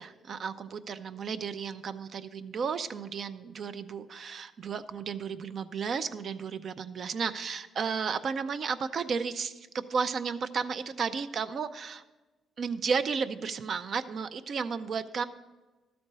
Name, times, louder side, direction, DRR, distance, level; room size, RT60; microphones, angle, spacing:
voice 1, 0.0-12.0 12.6-15.2, right 5 dB, 55° right, 11 dB, 0.5 m, -33 dB
12.5 x 4.3 x 6.7 m, 1.2 s
cardioid pair, 90°, 0 cm